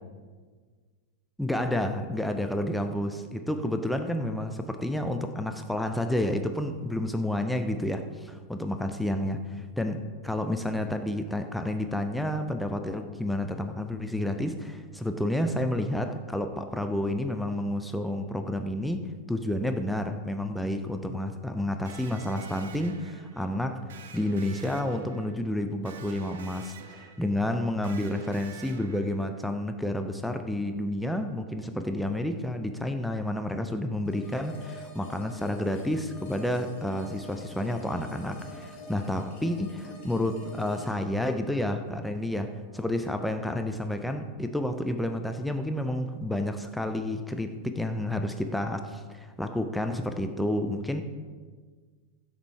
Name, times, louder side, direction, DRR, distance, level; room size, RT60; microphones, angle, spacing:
voice 1, 1.4-23.8 24.1-51.0, left 1 dB, ahead, 6 dB, 0.3 m, -30 dB
Electric guitar, 21.8-29.5, right 5 dB, 60° right, 0.5 m, -48 dB
sound 1, 34.0-43.1, left 2 dB, 50° left, 1.4 m, -47 dB
7.1 x 3.7 x 4.5 m, 1.5 s
figure-of-eight pair, 90°, 0 cm